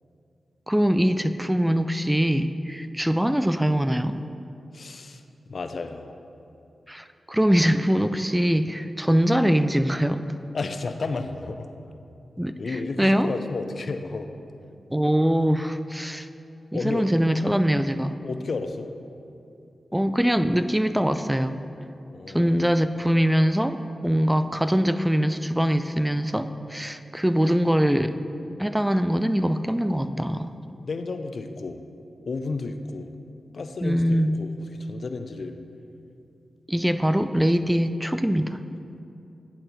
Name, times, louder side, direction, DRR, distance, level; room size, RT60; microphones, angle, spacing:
voice 1, 0.7-4.2 6.9-10.2 12.4-13.3 14.9-16.3 16.7-18.1 19.9-21.6 22.3-28.1 28.6-30.5 33.8-34.3 36.7-38.6, equal, 10° right, 11 dB, 0.3 m, -23 dB
voice 2, 4.7-6.2 10.5-11.7 12.6-14.3 16.7-17.1 18.2-18.9 22.1-22.7 30.8-31.8 32.3-33.1 33.5-35.6, left 3 dB, 65° left, 8 dB, 0.4 m, -32 dB
9.7 x 4.3 x 3.9 m, 2.7 s
cardioid pair, 40°, 0 cm